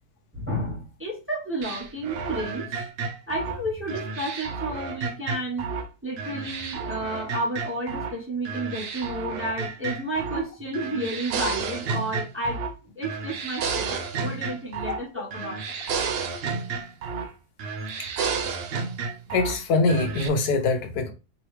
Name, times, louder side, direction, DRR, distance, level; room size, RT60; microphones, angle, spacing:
voice 1, 0.3-2.9 3.3-5.7 6.0-12.6 12.9-15.6, right 1 dB, 10° right, 0.8 m, -31 dB
sound 1, 1.6-5.9 6.2-8.2 8.5-10.5 10.7-12.8 13.0-15.1 15.3-17.3 17.6-19.6 19.9-20.3, right 5 dB, 80° right, 0.5 m, -31 dB
voice 2, 19.3-21.1, left 3 dB, 75° left, 1.2 m, -23 dB
4.6 x 3.0 x 3.1 m
omnidirectional pair, 1.7 m